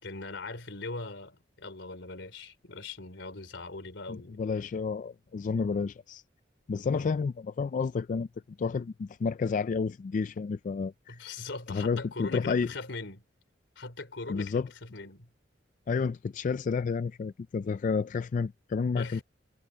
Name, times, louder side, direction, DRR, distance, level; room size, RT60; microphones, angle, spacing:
voice 1, 0.0-4.4 6.8-7.1 11.1-13.2 13.7-15.3 19.0-19.2, left 3 dB, 85° left, 3.3 m, -40 dB
voice 2, 4.1-6.2 6.7-8.3 8.6-11.2 11.7-12.7 14.3-14.7 15.9-19.2, left 5 dB, 45° left, 0.3 m, -30 dB
head